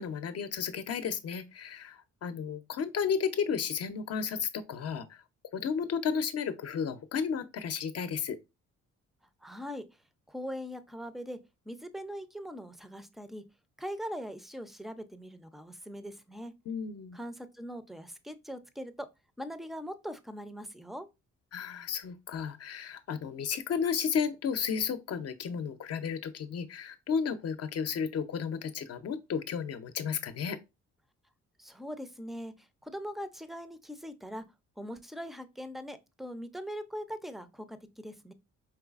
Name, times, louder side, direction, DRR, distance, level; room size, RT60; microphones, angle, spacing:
voice 1, 0.0-5.2 5.5-8.4 16.7-17.2 21.5-30.6, left 6 dB, 55° left, 0.6 m, -33 dB
voice 2, 9.4-9.8 10.3-11.4 11.7-13.4 13.8-16.5 17.1-19.1 19.4-21.1 31.6-32.5 32.8-34.4 34.8-38.3, equal, ahead, 0.4 m, -41 dB
4.8 x 3.2 x 2.4 m
cardioid pair, 90°, 30 cm